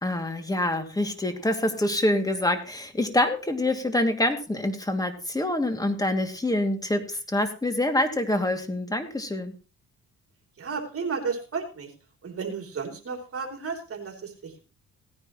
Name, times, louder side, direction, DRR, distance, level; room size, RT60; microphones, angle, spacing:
voice 1, 0.0-9.5, left 1 dB, 10° left, 6 dB, 2.5 m, -26 dB
voice 2, 10.6-11.9 12.2-14.6, right 5 dB, 50° right, 3 dB, 3.4 m, -33 dB
17.0 x 10.0 x 3.1 m, 0.33 s
cardioid pair, 90°, 30 cm